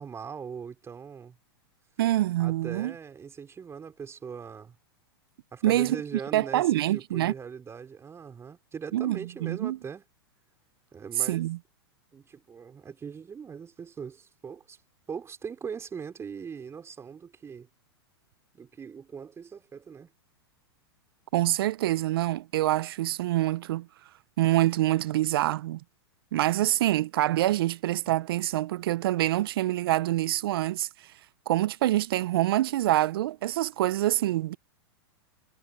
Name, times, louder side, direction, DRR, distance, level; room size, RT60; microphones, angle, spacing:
voice 1, 0.0-1.4 2.4-4.8 5.5-10.0 10.9-11.4 12.1-14.8 15.1-17.7 18.5-20.1 28.0-28.1, right 6 dB, 20° right, 5.2 m, -40 dB
voice 2, 2.0-2.9 5.6-6.0 6.3-7.3 8.9-9.8 11.3-11.6 21.3-23.9 24.4-25.8 26.3-30.9 31.5-34.6, right 15 dB, 65° right, 0.9 m, -26 dB
hypercardioid pair, 105°, 13 cm